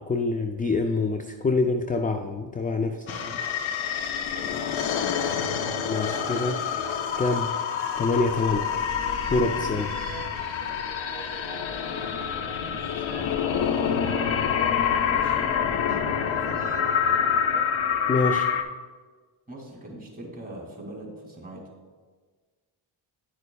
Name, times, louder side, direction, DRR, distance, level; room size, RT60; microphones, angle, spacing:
voice 1, 0.0-3.2 5.9-6.6 7.2-7.5 8.0-8.7 9.3-9.9 18.1-18.5, left 3 dB, 20° left, 5 dB, 0.3 m, -26 dB
voice 2, 3.0-3.4 4.2-5.2 9.9-10.2 12.6-13.2 14.9-16.6 19.5-21.6, right 1 dB, 15° right, -1 dB, 2.4 m, -42 dB
sound 1, 3.1-18.6, left 8 dB, 70° left, 0.7 m, -27 dB
sound 2, 3.5-3.9 5.2-14.9 15.9-18.6, right 7 dB, 75° right, 0.7 m, -44 dB
10.5 x 6.6 x 2.3 m, 1.4 s
cardioid pair, 75°, 49 cm